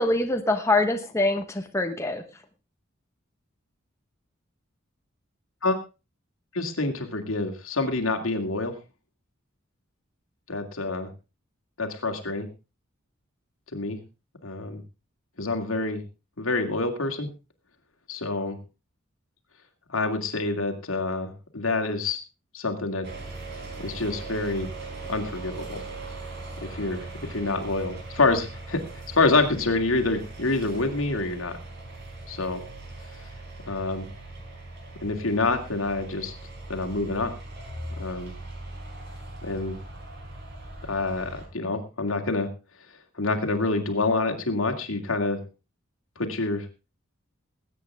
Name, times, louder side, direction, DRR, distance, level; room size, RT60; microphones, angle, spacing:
voice 1, 0.0-2.2, left 2 dB, 15° left, 5 dB, 1.2 m, -24 dB
voice 2, 6.5-8.7 10.5-11.1 11.8-12.5 13.7-14.0 14.4-14.8 15.4-16.0 16.4-17.3 18.1-18.6 19.9-22.2 22.5-23.1 23.8-24.7 25.1-25.8 26.7-31.6 32.3-32.6 33.7-34.1 35.0-36.3 36.7-37.3 38.0-38.3 39.4-39.8 40.9-42.5 43.2-45.4 46.2-46.6, left 3 dB, 80° left, 4 dB, 2.4 m, -27 dB
sound 1, 23.0-41.5, right 2 dB, 55° right, 4.5 m, -40 dB
20.5 x 8.9 x 3.6 m, 0.29 s
head